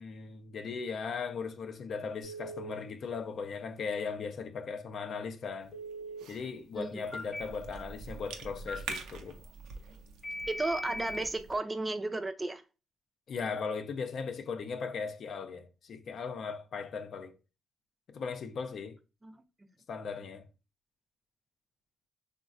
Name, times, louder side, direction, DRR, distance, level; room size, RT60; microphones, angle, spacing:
voice 1, 0.0-5.7 6.3-9.4 13.3-17.4 18.1-19.0 19.9-20.5, left 5 dB, 60° left, 0.4 m, -38 dB
Telephone, 2.2-2.7 5.7-6.2 7.1-7.4 8.7-9.0 10.2-11.3, equal, 15° left, 0.9 m, -39 dB
Cough / Chewing mastication, 5.6-11.6, right 5 dB, 90° right, 0.4 m, -46 dB
voice 2, 10.5-12.6 19.2-19.4, right 2 dB, 20° right, 0.4 m, -34 dB
3.2 x 2.1 x 2.4 m
cardioid pair, 90°, 0 cm